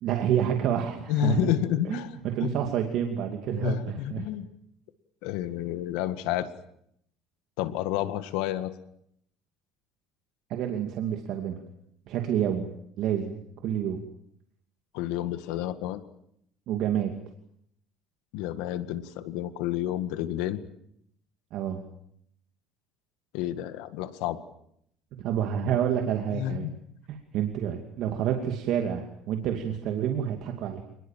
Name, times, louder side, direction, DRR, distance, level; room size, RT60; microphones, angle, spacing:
voice 1, 0.0-1.5 1.8-4.3 10.5-11.6 12.1-12.7 13.0-13.4 13.6-14.0 16.7-17.1 21.5-21.8 25.2-26.7 27.1-30.8, right 9 dB, 60° right, 4 dB, 2.5 m, -28 dB
voice 2, 1.1-2.5 3.5-4.5 5.2-6.5 7.6-8.7 14.9-16.0 18.3-20.6 23.3-24.4 26.3-26.7, left 13 dB, 90° left, 11 dB, 1.8 m, -30 dB
27.5 x 20.5 x 7.5 m, 0.72 s
cardioid pair, 150°, 0 cm